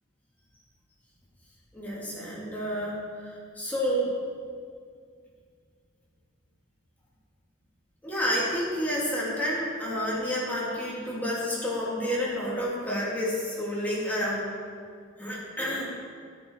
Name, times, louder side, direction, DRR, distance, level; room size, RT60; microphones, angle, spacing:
voice 1, 1.7-4.1 8.0-14.5 15.2-15.8, equal, 10° left, -7 dB, 3.3 m, -30 dB
13.0 x 11.5 x 5.1 m, 2.1 s
head